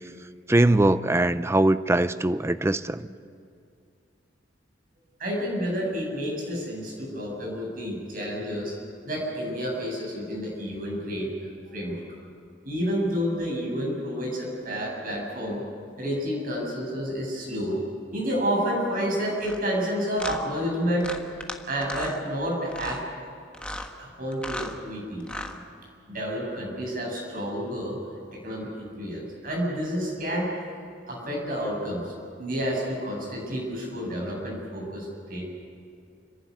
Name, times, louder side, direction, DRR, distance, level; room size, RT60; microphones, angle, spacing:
voice 1, 0.5-3.0, right 1 dB, 15° right, 13 dB, 0.5 m, -21 dB
voice 2, 5.2-8.7 9.0-12.0 12.6-15.6 16.0-17.8 18.1-21.2 21.7-23.0 24.0-25.5 26.1-28.0 28.3-30.5 31.1-32.1 32.4-35.4, equal, 50° right, -1 dB, 7.7 m, -30 dB
sound 1, 19.4-19.6 20.2-20.4 21.0-21.6 21.8-22.2 22.7-23.0 23.5-23.9 24.3-24.7 25.2-25.6, left 1 dB, 5° left, 1.4 m, -35 dB
30.0 x 11.5 x 9.6 m, 2.4 s
head